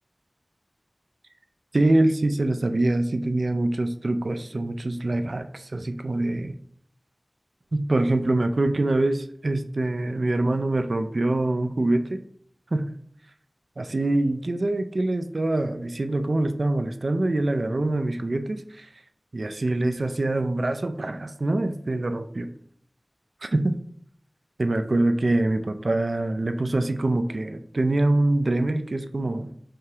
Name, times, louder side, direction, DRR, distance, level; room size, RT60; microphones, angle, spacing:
voice 1, 1.7-6.6 7.7-12.2 12.7-12.9 13.8-18.9 19.3-22.5 23.4-23.8 24.6-29.5, right 2 dB, 70° right, 8 dB, 0.3 m, -24 dB
4.9 x 3.4 x 2.9 m, 0.68 s
wide cardioid pair, 50°, 0 cm